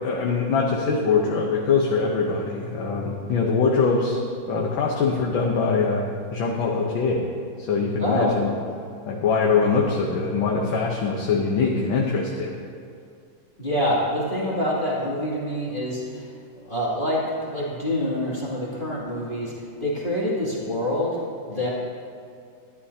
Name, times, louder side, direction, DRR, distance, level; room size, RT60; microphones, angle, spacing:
voice 1, 0.0-4.2 4.5-7.2 7.6-8.5 9.1-12.5, left 4 dB, 75° left, -1 dB, 1.8 m, -23 dB
voice 2, 8.0-8.3 13.6-16.3 16.7-19.5 19.8-21.2 21.5-21.7, left 1 dB, 25° left, -8 dB, 2.8 m, -26 dB
21.0 x 12.5 x 2.9 m, 2.3 s
omnidirectional pair, 2.2 m